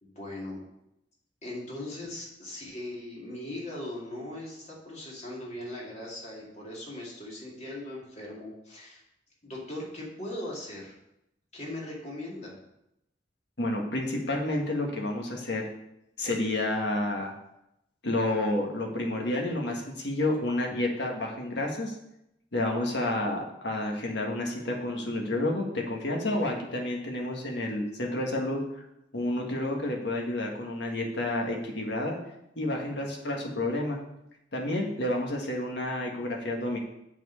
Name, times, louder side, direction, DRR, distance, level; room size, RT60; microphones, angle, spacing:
voice 1, 0.0-0.6 1.4-9.0 9.4-10.9 11.5-12.5, left 1 dB, 40° left, -3 dB, 2.4 m, -39 dB
voice 2, 13.6-15.6 16.2-17.3 18.0-22.0 22.5-28.6 29.1-32.2 32.6-34.0 34.5-36.8, left 1 dB, 65° left, 0 dB, 1.8 m, -30 dB
8.2 x 4.5 x 7.0 m, 0.83 s
head